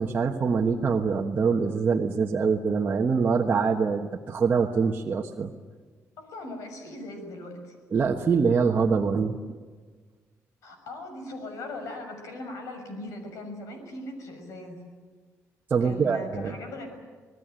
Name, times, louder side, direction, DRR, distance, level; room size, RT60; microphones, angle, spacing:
voice 1, 0.0-5.5 7.9-9.4 15.7-16.5, right 5 dB, 35° right, -1 dB, 1.3 m, -24 dB
voice 2, 6.2-7.7 10.6-14.9 15.8-16.9, left 2 dB, 75° left, 6 dB, 6.4 m, -39 dB
27.0 x 19.0 x 9.1 m, 1.5 s
cardioid pair, 140°, 5 cm